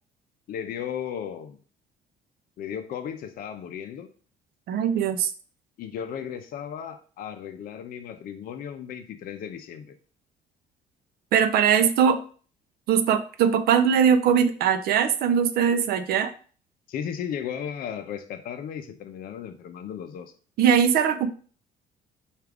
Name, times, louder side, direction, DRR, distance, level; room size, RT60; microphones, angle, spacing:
voice 1, 0.5-1.6 2.6-4.1 5.8-10.0 16.9-20.3, left 8 dB, 60° left, 7 dB, 0.5 m, -35 dB
voice 2, 4.7-5.3 11.3-12.2 12.9-16.3 20.6-21.3, right 7 dB, 65° right, 9 dB, 0.5 m, -21 dB
4.6 x 2.4 x 3.4 m, 0.42 s
cardioid pair, 110°, 17 cm